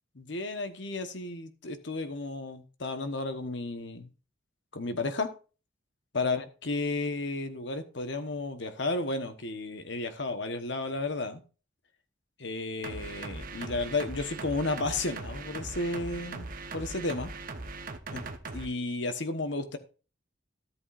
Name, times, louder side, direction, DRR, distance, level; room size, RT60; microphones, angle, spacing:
voice 1, 0.2-4.1 4.7-5.3 6.1-11.4 12.4-16.5 16.7-17.3 18.1-18.2 18.5-19.8, left 2 dB, 60° left, 1.2 m, -33 dB
sound 1, 12.8-18.7, right 3 dB, 45° right, 1.0 m, -40 dB
13.0 x 7.9 x 2.5 m
head